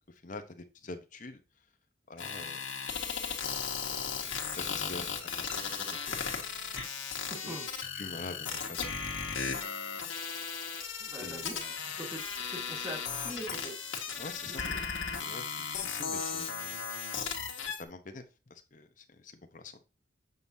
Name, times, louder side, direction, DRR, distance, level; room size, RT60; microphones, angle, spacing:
voice 1, 0.0-1.4 2.1-2.6 3.5-3.6 4.5-5.1 5.5-6.2 7.4-7.6 7.9-8.8 9.4-9.6 11.2-11.7 14.2-14.7 15.2-16.8 17.4-17.5 17.8-19.8, left 3 dB, 40° left, 7 dB, 1.0 m, -45 dB
sound 1, 2.2-17.8, left 6 dB, 80° left, 1.7 m, -36 dB
voice 2, 4.6-4.9 7.3-7.7 10.6-11.6 11.9-13.7 14.1-14.8, right 1 dB, 20° right, -1 dB, 2.1 m, -44 dB
7.9 x 5.4 x 2.8 m, 0.31 s
head